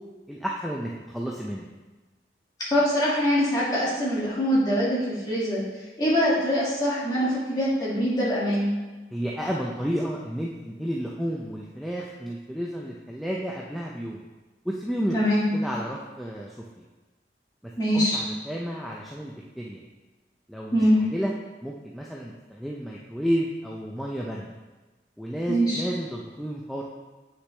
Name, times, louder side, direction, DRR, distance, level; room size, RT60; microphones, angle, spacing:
voice 1, 0.3-1.7 9.1-14.3 14.6-15.2 15.5-16.8 17.9-19.8 20.5-20.8 21.1-21.3 21.6-24.5 25.2-26.8, equal, ahead, -3 dB, 0.4 m, -31 dB
voice 2, 2.7-5.6 6.0-8.7 15.1-15.5 17.8-18.2 20.7-21.0 25.5-25.8, equal, 20° left, -8 dB, 2.0 m, -23 dB
8.0 x 5.9 x 3.3 m, 1.2 s
head